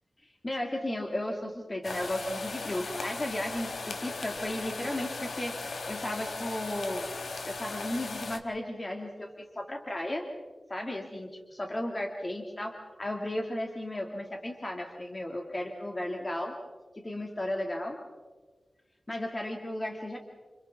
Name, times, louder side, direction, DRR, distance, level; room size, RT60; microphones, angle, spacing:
voice 1, 0.4-7.1 7.4-10.2 10.7-16.6 17.0-18.0 19.1-20.2, left 1 dB, 25° left, 1 dB, 2.3 m, -34 dB
sound 1, 1.8-8.4, left 3 dB, 75° left, 1.6 m, -37 dB
30.0 x 28.5 x 3.6 m, 1.4 s
wide cardioid pair, 115°, 0 cm